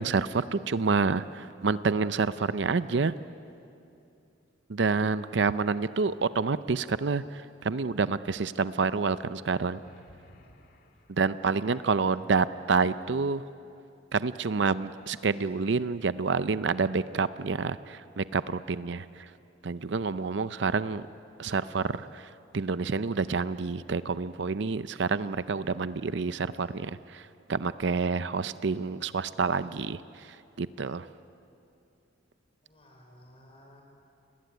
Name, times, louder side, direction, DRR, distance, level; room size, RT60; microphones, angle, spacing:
voice 1, 0.0-3.1 4.7-9.8 11.1-13.4 14.1-19.3 19.6-21.0 21.4-31.1, right 4 dB, 60° right, 14 dB, 0.6 m, -28 dB
sound 1, 9.8-11.9, left 1 dB, 50° left, 2.2 m, -57 dB
voice 2, 11.3-12.4 32.6-33.8, left 1 dB, 30° left, 1 dB, 5.2 m, -55 dB
29.5 x 19.5 x 9.4 m, 2.6 s
head